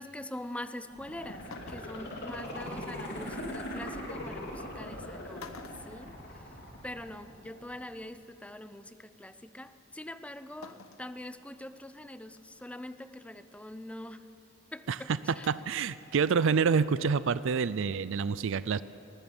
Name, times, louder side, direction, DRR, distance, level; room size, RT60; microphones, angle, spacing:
voice 1, 0.0-5.6 5.9-6.2 6.8-14.3 14.7-15.1 15.4-15.5, left 1 dB, 5° left, 12 dB, 0.7 m, -43 dB
sound 1, 0.9-7.8 8.2-8.3, left 1 dB, 55° left, 3.2 m, -40 dB
sound 2, 1.5-2.2 3.8-3.9 4.8-5.0 5.4-6.8 7.1-7.2 8.4-8.5 10.6-11.1 11.7-11.8 12.4-12.7 15.3-15.9 16.2-16.3, left 5 dB, 85° left, 1.1 m, -50 dB
voice 2, 15.5-18.8, right 5 dB, 65° right, 16 dB, 0.5 m, -27 dB
20.0 x 19.0 x 7.2 m, 2.9 s
head